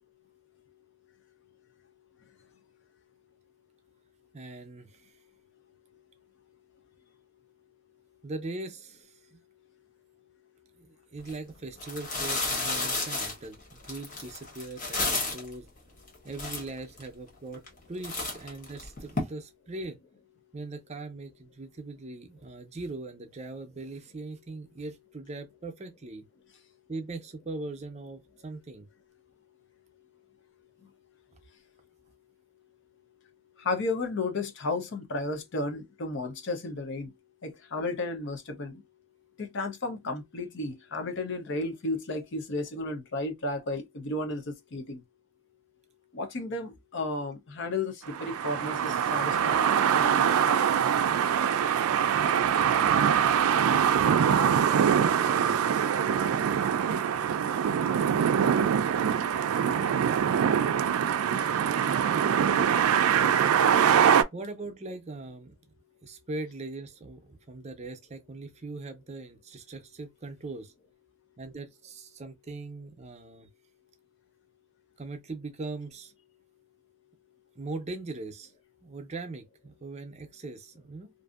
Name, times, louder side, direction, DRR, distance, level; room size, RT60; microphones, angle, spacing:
voice 1, 4.3-5.1 8.2-9.4 10.8-15.7 16.2-20.0 20.5-26.2 26.9-28.9 53.6-55.6 59.6-60.3 64.3-65.5 66.0-70.7 71.4-73.5 75.0-76.1 77.6-78.5 78.8-81.1, right 2 dB, 30° right, 0.5 m, -40 dB
sound 1, 11.2-11.3 11.8-15.5 16.1-16.2 16.3-17.0 17.5-17.8 18.0-19.2, left 3 dB, 40° left, 1.1 m, -32 dB
voice 2, 33.6-37.1 37.4-38.8 39.4-45.0 46.1-50.5, left 2 dB, 60° left, 0.6 m, -33 dB
sound 2, 48.1-64.2, right 8 dB, 85° right, 0.3 m, -24 dB
2.6 x 2.6 x 2.3 m
head